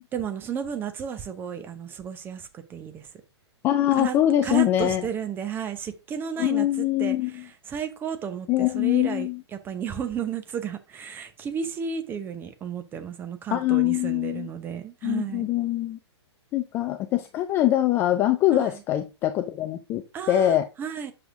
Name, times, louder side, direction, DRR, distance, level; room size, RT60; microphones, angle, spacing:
voice 1, 0.1-3.1 4.0-4.2 4.4-15.5 18.5-18.8 20.1-21.1, right 7 dB, 15° right, 0.8 m, -33 dB
voice 2, 3.6-5.0 6.4-7.3 8.5-9.4 13.5-14.5 15.0-16.0 16.5-20.0 20.3-20.7, left 13 dB, 15° left, 0.4 m, -23 dB
7.7 x 6.3 x 2.5 m
figure-of-eight pair, 120°, 15 cm